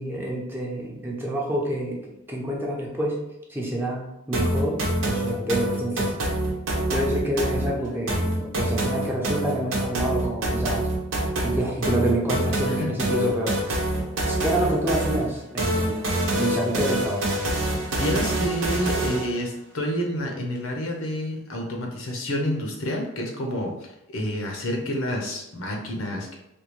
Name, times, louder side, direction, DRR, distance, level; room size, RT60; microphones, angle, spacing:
voice 1, 0.0-2.0 2.3-3.2 3.5-6.1 6.9-10.9 11.4-16.0 16.4-17.3, right 1 dB, 10° right, -2 dB, 0.5 m, -28 dB
sound 1, 4.3-19.3, right 1 dB, 70° right, 0.8 m, -26 dB
voice 2, 17.9-26.4, equal, 80° left, 1 dB, 0.7 m, -29 dB
3.4 x 2.3 x 3.0 m, 0.88 s
head